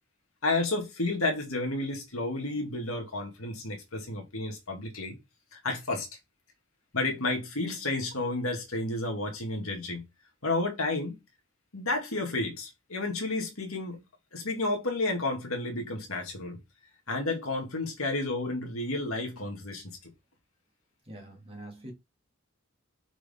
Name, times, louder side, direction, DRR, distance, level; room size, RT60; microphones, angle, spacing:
voice 1, 0.4-5.2 5.5-6.1 6.9-10.0 10.4-11.2 11.7-14.0 14.3-16.6 17.1-20.1, left 2 dB, 80° left, 2.1 m, -31 dB
voice 2, 21.1-21.9, right 1 dB, 25° right, 2.5 m, -44 dB
6.1 x 4.8 x 3.7 m
head